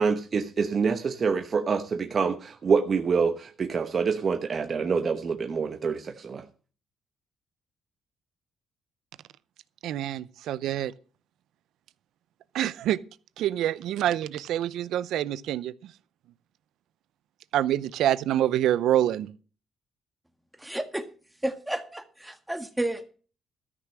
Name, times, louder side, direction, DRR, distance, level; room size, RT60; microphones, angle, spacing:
voice 1, 0.0-6.4, right 5 dB, 45° right, 1.0 m, -26 dB
voice 2, 9.8-10.9 12.5-13.0 13.4-15.9 17.5-19.3, right 12 dB, 80° right, 0.6 m, -26 dB
voice 3, 20.6-21.1 21.4-23.1, right 1 dB, 5° right, 1.7 m, -31 dB
13.5 x 6.1 x 7.6 m
cardioid pair, 90°, 0 cm